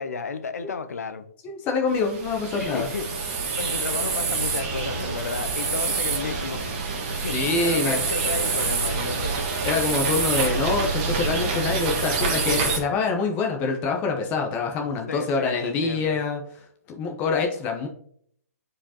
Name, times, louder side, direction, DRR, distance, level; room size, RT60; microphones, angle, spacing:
voice 1, 0.0-1.3 2.6-3.2 3.6-9.4 12.0-12.4 15.1-16.2, left 4 dB, 75° left, 12 dB, 0.8 m, -33 dB
voice 2, 1.4-2.9 7.3-8.0 9.6-16.4 16.9-17.9, left 4 dB, 20° left, 2 dB, 0.8 m, -25 dB
sound 1, 1.9-12.8, right 4 dB, 30° right, 1.5 m, -26 dB
8.7 x 4.9 x 2.8 m, 0.64 s
hypercardioid pair, 160°, 8 cm